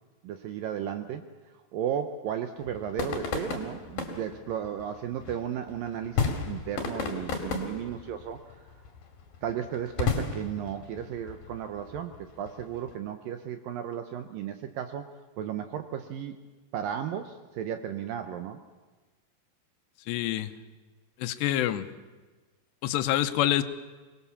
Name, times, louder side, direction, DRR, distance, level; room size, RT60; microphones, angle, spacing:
voice 1, 0.2-1.2 1.7-8.6 9.4-15.1 15.4-16.4 16.7-18.6, right 9 dB, 75° right, 8 dB, 2.1 m, -34 dB
sound 1, 2.6-12.9, left 5 dB, 60° left, 3.9 m, -35 dB
voice 2, 20.1-20.5 21.2-21.9 22.8-23.6, left 13 dB, 85° left, 11 dB, 3.0 m, -26 dB
24.0 x 20.0 x 7.1 m, 1.3 s
omnidirectional pair, 4.9 m